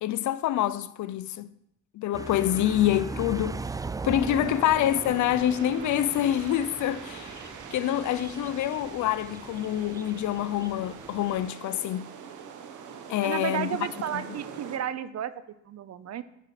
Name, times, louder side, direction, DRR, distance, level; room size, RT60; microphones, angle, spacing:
voice 1, 0.0-1.5 1.9-3.6 4.0-12.1 13.1-13.7 14.1-14.2, left 12 dB, 75° left, 0.6 m, -26 dB
sound 1, 2.1-11.5, right 3 dB, 10° right, 0.3 m, -39 dB
sound 2, 4.3-14.8, right 7 dB, 75° right, 1.4 m, -43 dB
voice 2, 13.2-16.2, right 9 dB, 60° right, 0.8 m, -33 dB
12.5 x 5.9 x 5.9 m
cardioid pair, 90°, 30 cm